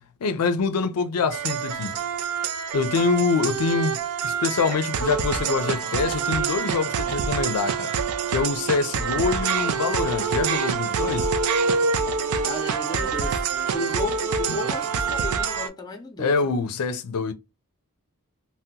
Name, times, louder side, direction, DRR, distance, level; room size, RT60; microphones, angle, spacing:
voice 1, 0.0-1.9 2.7-4.0 4.2-7.9 8.3-11.3 16.2-17.3, left 4 dB, 80° left, 0.4 m, -25 dB
sound 1, 1.3-15.7, right 5 dB, 70° right, 0.4 m, -26 dB
voice 2, 12.4-13.4 13.7-16.5, left 2 dB, 20° left, 0.6 m, -33 dB
2.7 x 2.1 x 3.5 m
head